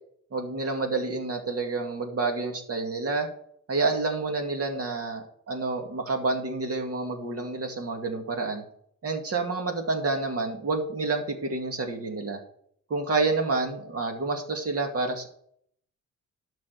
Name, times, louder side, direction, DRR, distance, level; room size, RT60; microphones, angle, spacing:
voice 1, 0.3-3.3 3.7-8.6 9.0-12.4 12.9-15.3, right 3 dB, 50° right, 3 dB, 2.2 m, -29 dB
12.0 x 6.3 x 4.7 m, 0.65 s
cardioid pair, 110°, 30 cm